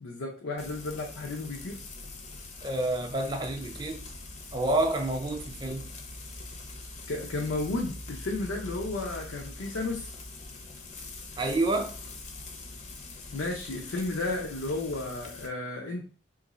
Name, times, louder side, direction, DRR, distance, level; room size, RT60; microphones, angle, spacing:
voice 1, 0.0-1.8 7.1-10.1 13.3-16.0, left 2 dB, 90° left, 0.6 m, -33 dB
Frying (food), 0.6-15.5, left 2 dB, 35° left, 0.5 m, -43 dB
voice 2, 2.6-4.0 4.5-5.9 11.4-11.9, right 2 dB, 20° right, 0.4 m, -28 dB
3.0 x 2.5 x 3.9 m
head